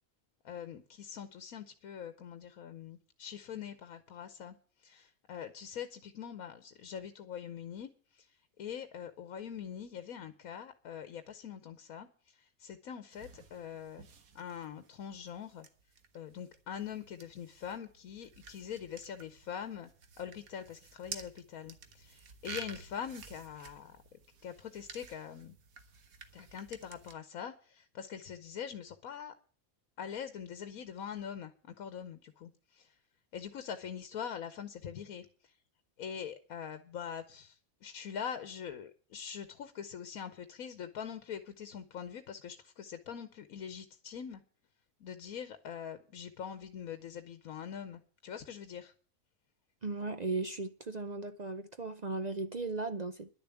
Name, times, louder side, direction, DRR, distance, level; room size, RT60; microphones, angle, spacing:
voice 1, 0.4-14.0 14.3-15.7 16.1-19.9 20.2-24.0 24.4-25.6 26.3-29.3 30.0-33.0 33.3-35.6 36.0-44.4 45.0-48.9, left 8 dB, 85° left, 1.3 m, -43 dB
sound 1, 13.1-27.1, right 5 dB, 90° right, 1.7 m, -52 dB
voice 2, 49.8-53.3, right 3 dB, 45° right, 0.6 m, -36 dB
11.0 x 6.9 x 9.1 m
omnidirectional pair, 1.4 m